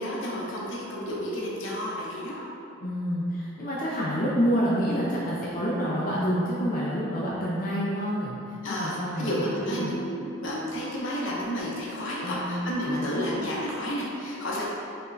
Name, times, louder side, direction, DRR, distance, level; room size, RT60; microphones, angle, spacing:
voice 1, 0.0-2.4 8.6-14.7, equal, 70° left, -4 dB, 0.8 m, -31 dB
voice 2, 2.8-9.9 12.2-12.5 12.9-13.3, equal, 45° left, -7 dB, 0.5 m, -28 dB
4.5 x 3.1 x 2.6 m, 2.6 s
head